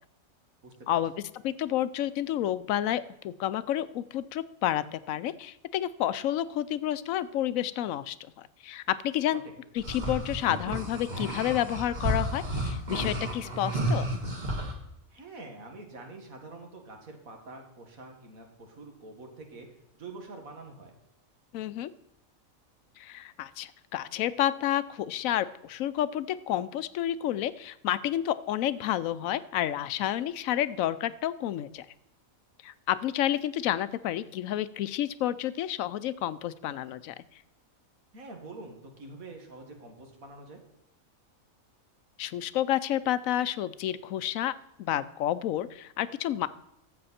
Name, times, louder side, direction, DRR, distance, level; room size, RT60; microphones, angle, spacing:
voice 1, 0.6-1.0 15.1-19.7 20.0-20.9 38.1-40.6, right 3 dB, 80° right, 3 dB, 2.3 m, -46 dB
voice 2, 1.4-9.4 9.7-14.1 21.5-21.9 23.0-31.9 32.6-37.1 42.2-44.5 44.8-46.5, left 12 dB, 75° left, 16 dB, 1.0 m, -30 dB
sound 1, 9.8-14.7, right 1 dB, 35° right, 1.6 m, -32 dB
13.0 x 7.8 x 4.2 m, 0.89 s
omnidirectional pair, 1.4 m